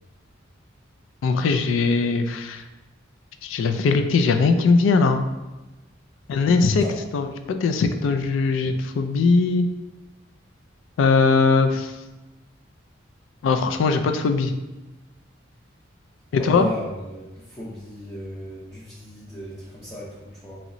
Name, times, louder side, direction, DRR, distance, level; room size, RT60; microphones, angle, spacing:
voice 1, 1.2-2.6 3.4-5.2 6.3-6.8 7.1-9.6 11.0-11.9 13.4-14.5 16.3-16.7, left 4 dB, 80° left, 8 dB, 0.3 m, -20 dB
voice 2, 16.4-20.6, equal, 15° left, -8 dB, 0.5 m, -35 dB
3.0 x 2.9 x 2.6 m, 1.1 s
head